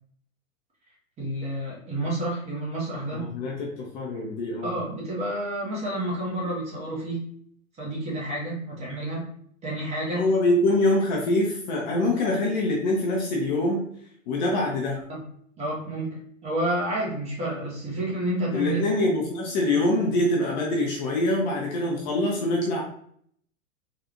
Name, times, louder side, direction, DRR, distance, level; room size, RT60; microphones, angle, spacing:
voice 1, 1.2-3.3 4.6-7.3 7.8-9.3 9.6-10.4 15.1-15.2 15.6-18.8, right 1 dB, 15° right, -5 dB, 1.0 m, -30 dB
voice 2, 3.1-4.7 10.1-13.9 14.3-15.0 18.5-22.8, left 1 dB, 35° left, -2 dB, 0.6 m, -24 dB
3.6 x 2.4 x 2.9 m, 0.65 s
figure-of-eight pair, 100°, 41 cm